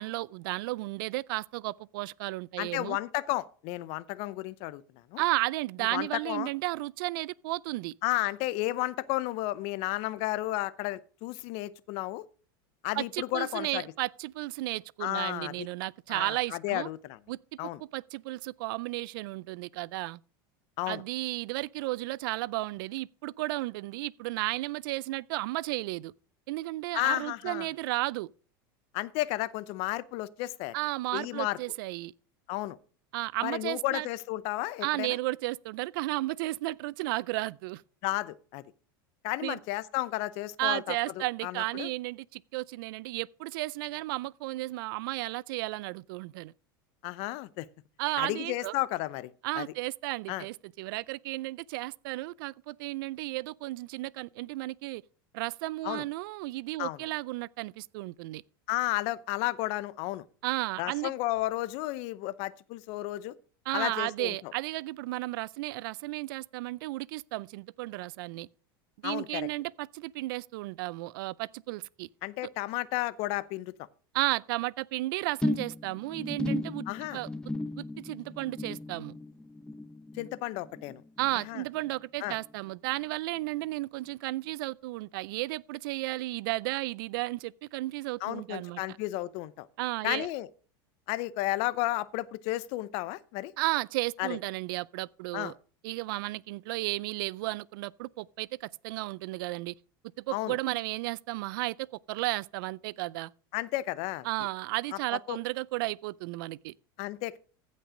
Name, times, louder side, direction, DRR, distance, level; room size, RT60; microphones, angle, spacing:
voice 1, 0.0-3.0 5.2-7.9 13.0-16.9 17.3-20.2 20.9-26.1 26.5-28.3 30.7-32.1 33.1-34.1 34.8-37.8 39.4-39.6 40.6-46.5 48.0-48.7 49.4-55.0 55.3-58.4 60.4-61.1 63.7-68.5 69.0-72.1 74.1-76.8 77.1-77.3 77.8-79.2 81.2-88.8 89.8-90.3 93.6-95.5 95.8-99.7 100.2-103.3 104.2-106.7, right 20 dB, 70° right, 0.4 m, -33 dB
voice 2, 2.6-4.8 5.1-5.2 5.9-6.5 8.0-12.2 12.8-13.8 15.0-15.7 16.1-17.2 17.6-17.8 20.8-21.0 26.9-27.7 28.9-30.7 31.1-31.6 32.5-32.8 33.4-35.2 38.0-38.6 39.2-41.9 47.0-47.7 48.2-49.3 49.6-49.7 50.3-50.5 55.8-56.0 56.8-57.0 58.7-60.2 60.8-63.4 63.7-64.5 69.0-69.5 72.2-73.7 76.9-77.2 80.1-81.0 81.3-81.6 82.2-82.4 88.2-89.7 90.0-90.5 91.1-93.5 94.2-94.4 95.3-95.5 100.3-100.6 103.5-104.3 105.3-105.4 107.0-107.4, left 17 dB, 55° left, 0.7 m, -33 dB
sound 1, 75.4-82.0 82.3-82.7 83.0-83.1, left 2 dB, 5° left, 0.9 m, -36 dB
15.0 x 5.4 x 5.0 m
supercardioid pair, 110°, 12 cm